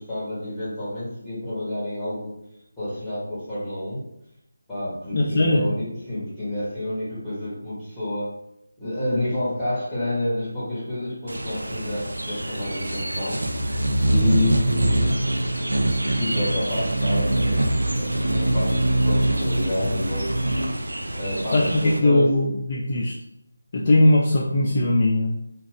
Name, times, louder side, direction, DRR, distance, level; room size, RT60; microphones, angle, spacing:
voice 1, 0.0-2.4 2.8-4.0 4.7-8.3 8.8-13.4 14.0-15.3 16.2-20.3 21.1-22.3, left 1 dB, 5° left, -12 dB, 1.2 m, -29 dB
voice 2, 5.1-5.6 14.2-14.5 19.8-20.0 21.5-23.1 23.7-25.3, left 1 dB, 35° left, -3 dB, 0.3 m, -20 dB
humming bird, 11.3-22.0, right 1 dB, 75° right, 0.5 m, -24 dB
2.4 x 2.4 x 3.3 m, 0.80 s
figure-of-eight pair, 160°, 0 cm